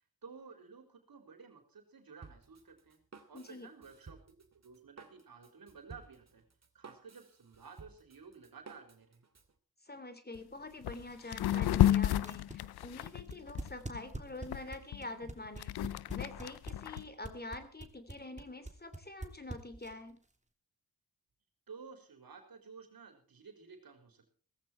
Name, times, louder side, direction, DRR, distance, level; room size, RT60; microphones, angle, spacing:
voice 1, 0.2-3.0 3.3-4.2 4.5-6.4 6.7-9.2 21.7-24.3, right 5 dB, 70° right, 5 dB, 4.3 m, -53 dB
Drum kit, 2.2-9.5, right 4 dB, 45° right, 2.6 m, -56 dB
voice 2, 3.3-3.7 9.8-15.7 16.1-20.2, left 2 dB, 25° left, 10 dB, 3.0 m, -46 dB
sound 1, 10.3-10.4 10.8-11.0 11.3-14.0 14.5-17.0, left 12 dB, 85° left, 0.6 m, -31 dB
sound 2, 12.2-20.1, right 2 dB, 20° right, 3.0 m, -44 dB
17.5 x 14.5 x 4.5 m, 0.41 s
cardioid pair, 50°, 37 cm